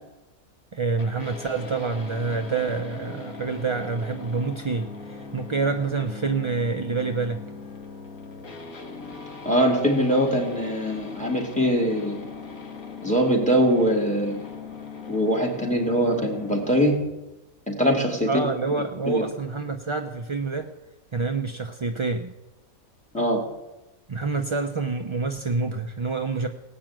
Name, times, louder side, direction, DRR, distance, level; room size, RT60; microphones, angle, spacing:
voice 1, 0.7-7.4 18.3-20.7 21.1-22.3 24.1-26.5, right 4 dB, 35° right, 4 dB, 0.4 m, -27 dB
sound 1, 1.0-17.0, left 4 dB, 70° left, 2.1 m, -40 dB
voice 2, 9.4-12.3 13.0-14.5 15.1-16.9 17.7-18.5 19.1-19.3 23.1-23.5, equal, 5° left, 1 dB, 2.8 m, -22 dB
18.0 x 6.0 x 8.9 m, 0.99 s
omnidirectional pair, 1.5 m